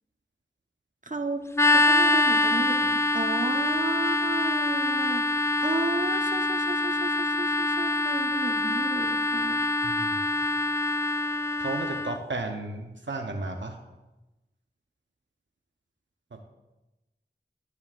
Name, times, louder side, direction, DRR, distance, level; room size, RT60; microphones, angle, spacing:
voice 1, 1.1-9.7, right 3 dB, 40° right, 4 dB, 1.0 m, -33 dB
sound 1, 1.5-12.2, left 2 dB, 15° left, 0.3 m, -25 dB
voice 2, 9.8-10.2 11.6-13.8 16.3-16.4, right 2 dB, 75° right, 3 dB, 0.8 m, -34 dB
12.0 x 9.9 x 2.4 m, 1.0 s
wide cardioid pair, 40°, 20 cm